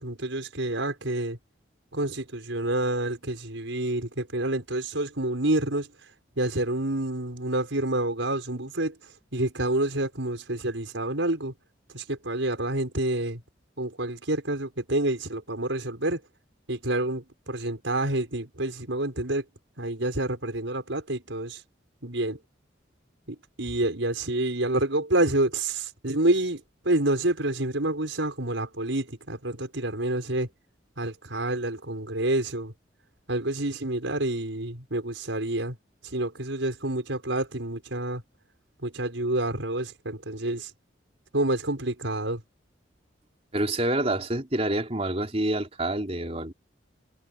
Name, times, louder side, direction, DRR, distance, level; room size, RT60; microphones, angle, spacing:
voice 1, 0.0-1.4 1.9-6.1 6.4-11.5 11.9-13.4 13.8-16.2 16.7-19.4 19.8-21.6 22.0-22.4 23.3-30.5 31.0-32.7 33.3-35.8 36.0-38.2 38.8-40.7 41.3-42.4, right 1 dB, 85° right, 5.4 m, -28 dB
voice 2, 43.5-46.5, right 1 dB, 35° right, 3.9 m, -27 dB
head